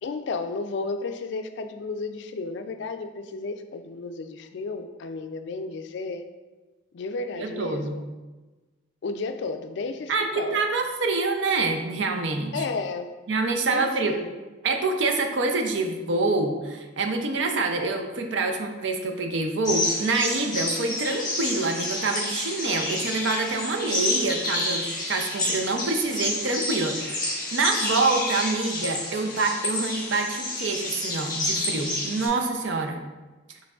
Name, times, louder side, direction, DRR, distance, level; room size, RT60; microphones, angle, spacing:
voice 1, 0.0-6.2 6.9-8.0 9.0-10.6 12.5-13.2 13.7-14.3, left 3 dB, 60° left, 8 dB, 0.3 m, -33 dB
voice 2, 7.4-8.0 10.1-12.6 13.3-14.2 14.6-33.0, right 3 dB, 70° right, 4 dB, 0.5 m, -26 dB
sound 1, 19.6-32.3, left 2 dB, 20° left, 0.9 m, -29 dB
6.0 x 3.2 x 2.3 m, 1.2 s
head